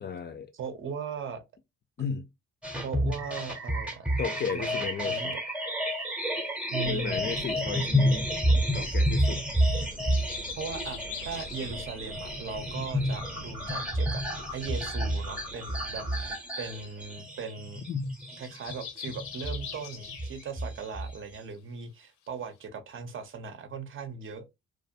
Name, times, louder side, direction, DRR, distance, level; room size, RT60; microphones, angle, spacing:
voice 1, 0.0-0.5 2.0-2.3 3.0-3.2 4.2-5.4 6.8-8.3 8.7-9.4 17.9-18.1, left 6 dB, 35° left, 0.4 m, -34 dB
voice 2, 0.5-1.4 2.8-4.2 4.5-5.4 6.7-7.2 10.6-14.2 14.5-17.9 18.4-24.5, right 5 dB, 40° right, 0.6 m, -38 dB
sound 1, 2.6-21.4, equal, 5° right, 0.7 m, -30 dB
sound 2, 5.9-6.0 6.7-9.0 9.5-12.2 12.4-14.0 14.5-14.6 14.8-15.0 16.1-16.2 16.4-16.5 16.8-17.0 17.4-17.5 17.8-20.7 21.0-21.1 21.5-21.6 22.3-22.4, left 8 dB, 85° left, 0.6 m, -45 dB
sound 3, 6.8-16.4, right 2 dB, 80° right, 0.7 m, -46 dB
2.4 x 2.2 x 2.6 m
cardioid pair, 90°, 30 cm